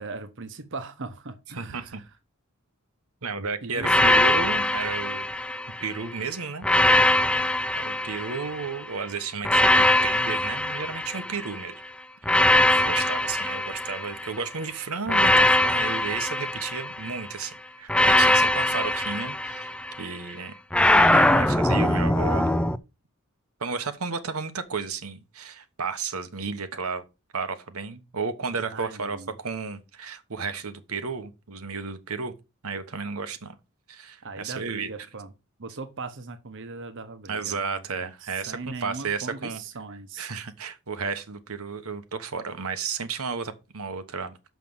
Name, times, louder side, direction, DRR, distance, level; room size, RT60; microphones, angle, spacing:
voice 1, 0.0-2.0 3.6-4.2 12.7-13.0 28.7-29.3 34.2-35.3 35.6-40.3, right 3 dB, 60° right, 1.1 m, -39 dB
voice 2, 1.6-2.0 3.2-5.3 5.8-7.3 7.7-11.8 12.7-20.6 21.1-22.5 23.6-27.0 27.3-32.3 32.6-33.6 33.9-34.9 37.3-39.6 40.2-44.4, right 5 dB, 85° right, 1.2 m, -33 dB
sound 1, 3.8-6.0 6.6-8.8 9.4-11.6 12.2-14.4 15.1-17.2 17.9-20.1 20.7-22.8, left 1 dB, 5° left, 0.4 m, -22 dB
6.2 x 5.9 x 7.2 m
head